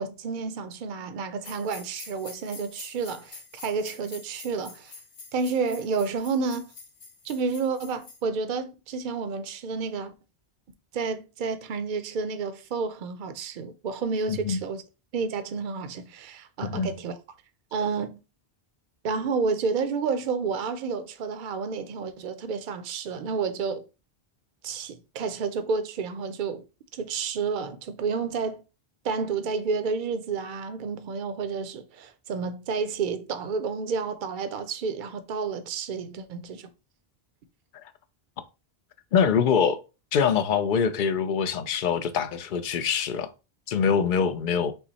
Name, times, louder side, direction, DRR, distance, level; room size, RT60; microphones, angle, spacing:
voice 1, 0.0-4.9 5.3-6.7 7.2-10.1 10.9-14.8 15.1-17.1 17.7-18.2 19.0-23.8 24.6-26.6 26.9-28.6 29.0-36.7, right 5 dB, 55° right, 0.7 m, -30 dB
sound 1, 1.4-8.2, left 4 dB, 85° left, 1.4 m, -47 dB
voice 2, 39.1-39.8 40.1-43.3 43.7-44.7, left 6 dB, 60° left, 0.7 m, -24 dB
5.7 x 2.1 x 4.0 m
omnidirectional pair, 1.1 m